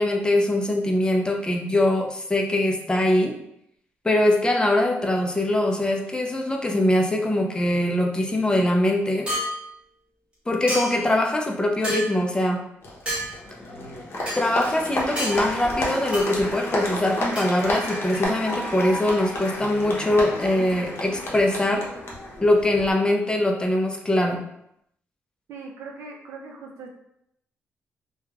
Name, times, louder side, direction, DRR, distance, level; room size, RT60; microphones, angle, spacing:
voice 1, 0.0-3.4 4.0-9.3 10.5-12.6 14.4-21.8 22.4-24.4, left 1 dB, 15° left, 2 dB, 0.4 m, -22 dB
sound 1, 9.3-9.5 10.7-11.1 11.8-12.1 13.1-13.3 14.3-14.4 15.2-15.4 16.1-16.3 17.3-18.2, equal, 20° right, 1.2 m, -29 dB
Applause, 12.8-22.9, left 1 dB, 55° left, 0.7 m, -31 dB
voice 2, 25.5-26.9, right 4 dB, 80° right, 1 dB, 0.5 m, -40 dB
3.0 x 2.2 x 2.3 m, 0.76 s
cardioid pair, 75°, 5 cm